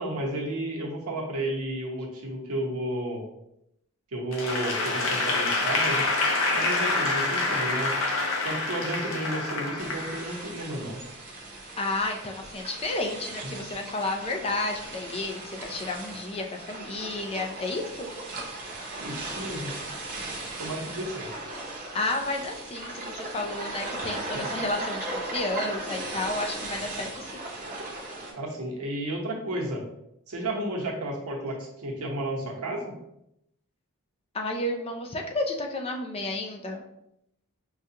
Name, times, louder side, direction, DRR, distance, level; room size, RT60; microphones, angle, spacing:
voice 1, 0.0-3.2 4.1-6.0 6.5-7.9 8.4-11.0 13.4-13.6 19.0-19.7 20.6-21.3 24.3-24.5 28.3-29.8 30.3-32.9, right 1 dB, 75° right, -2 dB, 0.9 m, -32 dB
Applause / Crowd, 4.3-10.6, left 2 dB, 65° left, 0.7 m, -27 dB
sound 1, 9.8-28.3, right 2 dB, 40° right, 0.8 m, -37 dB
voice 2, 11.8-18.1 21.9-27.4 34.3-36.8, left 2 dB, 25° left, 3 dB, 0.4 m, -31 dB
4.8 x 2.3 x 2.7 m, 0.81 s
head